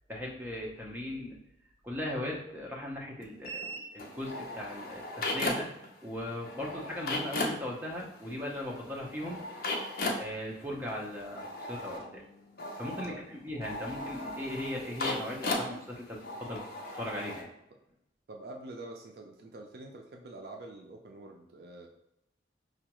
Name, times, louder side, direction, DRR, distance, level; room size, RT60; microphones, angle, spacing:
voice 1, 0.1-1.4 1.8-5.7 6.0-9.4 10.2-12.2 12.8-16.6 16.9-17.5, left 1 dB, 10° right, -3 dB, 0.6 m, -38 dB
sound 1, 3.4-5.9 6.1-17.4, left 2 dB, 50° left, 0.5 m, -37 dB
voice 2, 18.3-21.9, right 2 dB, 55° right, 2 dB, 0.4 m, -46 dB
4.8 x 2.2 x 2.9 m, 0.84 s
head